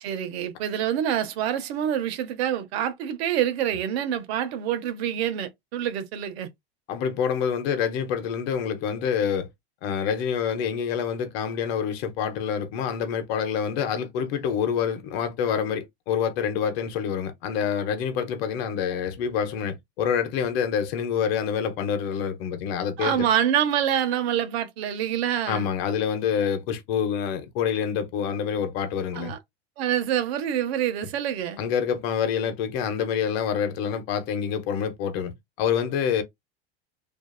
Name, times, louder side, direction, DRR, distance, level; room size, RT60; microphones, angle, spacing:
voice 1, 0.0-6.5 23.0-25.7 29.1-29.4 29.8-31.6, right 10 dB, 75° right, 0.8 m, -26 dB
voice 2, 6.9-9.5 9.8-23.3 25.5-29.3 31.6-36.2, left 7 dB, 70° left, 0.9 m, -27 dB
2.6 x 2.3 x 2.3 m
supercardioid pair, 110°, 32 cm